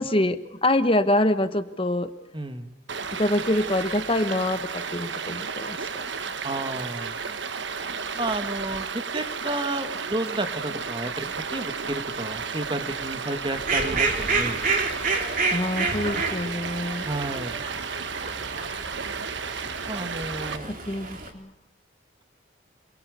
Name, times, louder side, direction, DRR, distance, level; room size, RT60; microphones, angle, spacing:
voice 1, 0.0-2.1 3.1-5.8 6.0-6.1 15.5-17.1 20.6-21.5, left 1 dB, 30° left, 11 dB, 1.2 m, -25 dB
voice 2, 2.3-2.7 6.4-7.2 8.1-14.6 17.0-17.6 19.9-20.8, right 2 dB, 25° right, 8 dB, 2.0 m, -31 dB
Stream, 2.9-20.6, right 5 dB, 65° right, 1.3 m, -33 dB
Fowl, 13.5-21.3, right 4 dB, 45° right, 3.6 m, -29 dB
27.5 x 22.5 x 6.9 m, 0.82 s
head